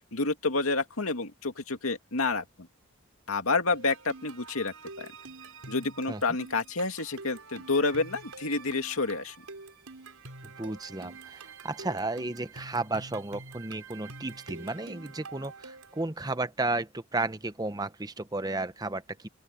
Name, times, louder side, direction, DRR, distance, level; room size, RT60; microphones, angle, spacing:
voice 1, 0.1-2.7 3.3-5.1 5.7-9.4, left 3 dB, 80° left, 2.4 m, -29 dB
sound 1, 3.7-16.0, right 3 dB, 85° right, 4.9 m, -47 dB
voice 2, 10.6-19.3, right 2 dB, 20° right, 0.9 m, -33 dB
open air
head